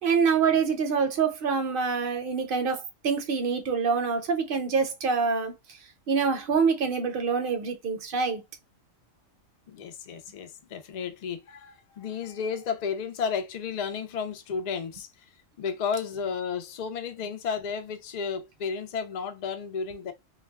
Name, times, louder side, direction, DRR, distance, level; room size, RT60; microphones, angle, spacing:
voice 1, 0.0-5.5 6.1-8.4, right 5 dB, 55° right, 0.7 m, -26 dB
voice 2, 9.7-15.1 15.6-20.1, left 6 dB, 70° left, 0.4 m, -33 dB
2.3 x 2.2 x 3.3 m
omnidirectional pair, 1.3 m